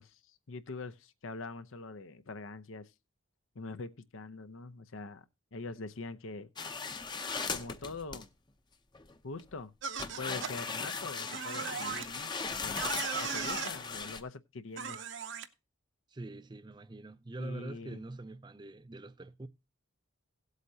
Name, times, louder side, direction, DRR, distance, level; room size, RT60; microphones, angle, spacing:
voice 1, 0.0-2.9 3.5-5.2 5.5-6.5 7.5-8.3 9.2-9.7 10.2-12.9 13.2-15.0 17.4-18.0, left 3 dB, 75° left, 0.8 m, -44 dB
sound 1, 6.6-8.3 8.9-9.4 10.0-14.2, left 4 dB, 20° left, 0.7 m, -38 dB
sound 2, 9.8-10.5 11.3-12.1 12.8-13.7 14.8-15.5, right 6 dB, 65° right, 0.9 m, -37 dB
voice 2, 16.1-19.5, right 2 dB, 20° right, 0.4 m, -44 dB
17.0 x 8.1 x 2.8 m
head